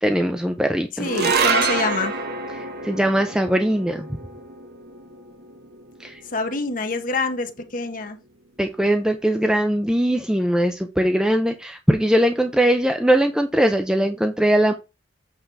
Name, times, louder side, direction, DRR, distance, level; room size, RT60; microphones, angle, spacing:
voice 1, 0.0-1.1 2.6-4.1 6.0-6.2 8.6-14.7, right 1 dB, 5° right, 0.5 m, -20 dB
voice 2, 1.0-2.2 6.3-8.2, left 3 dB, 45° left, 1.1 m, -26 dB
sound 1, 1.0-7.5, right 4 dB, 55° right, 1.0 m, -27 dB
8.0 x 3.8 x 4.5 m
head